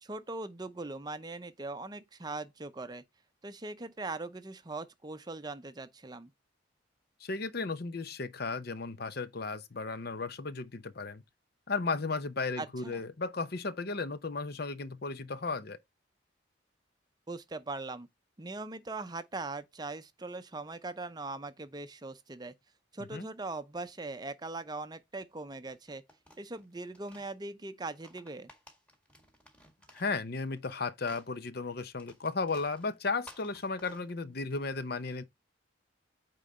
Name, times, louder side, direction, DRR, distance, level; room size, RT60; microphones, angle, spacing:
voice 1, 0.0-3.0 3.4-6.3 12.6-13.0 17.3-18.1 18.4-22.5 22.9-26.0 26.4-28.5, right 3 dB, 20° right, 0.6 m, -40 dB
voice 2, 7.2-11.2 11.7-15.8 23.0-23.3 29.9-35.2, left 4 dB, 50° left, 0.7 m, -35 dB
sound 1, 25.7-27.3 27.9-30.7 31.0-34.5, equal, 5° left, 1.7 m, -56 dB
8.9 x 3.8 x 4.3 m
head